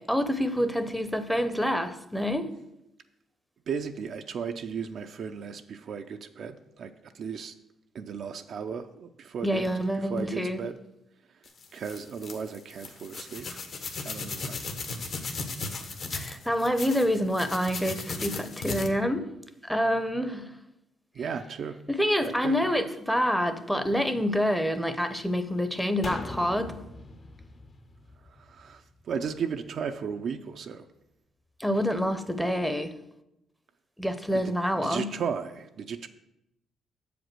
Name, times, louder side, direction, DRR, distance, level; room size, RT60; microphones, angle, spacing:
voice 1, 0.0-2.5 9.4-10.6 16.1-19.3 19.6-20.5 21.9-26.7 31.6-32.9 34.0-35.1, equal, ahead, 0.6 m, -27 dB
voice 2, 3.7-7.5 7.9-9.7 9.9-10.8 11.7-13.6 14.0-14.6 21.1-21.8 22.2-22.8 28.3-30.9 34.3-36.1, right 6 dB, 60° right, 0.4 m, -35 dB
sound 1, 11.5-18.9, left 3 dB, 60° left, 1.1 m, -36 dB
sound 2, 26.0-29.4 29.7-29.8, left 2 dB, 40° left, 0.8 m, -42 dB
7.2 x 5.1 x 6.1 m
cardioid pair, 90°, 0 cm